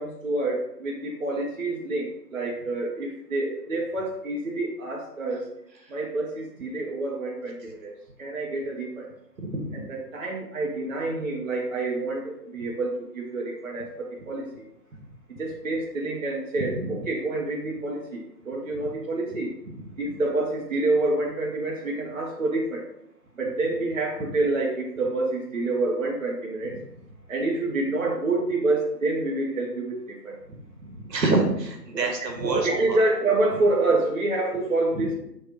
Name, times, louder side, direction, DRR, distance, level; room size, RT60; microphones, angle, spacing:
voice 1, 0.0-5.4 5.9-7.9 8.2-9.0 9.9-14.6 15.4-19.5 20.0-22.8 23.4-26.7 27.3-30.3 31.9-32.1 32.4-35.1, right 2 dB, 50° right, -3 dB, 0.8 m, -27 dB
voice 2, 9.4-9.8 16.6-16.9 30.8-33.0, right 2 dB, 75° right, 3 dB, 1.3 m, -27 dB
5.0 x 3.2 x 2.9 m, 0.80 s
figure-of-eight pair, 170°, 50 cm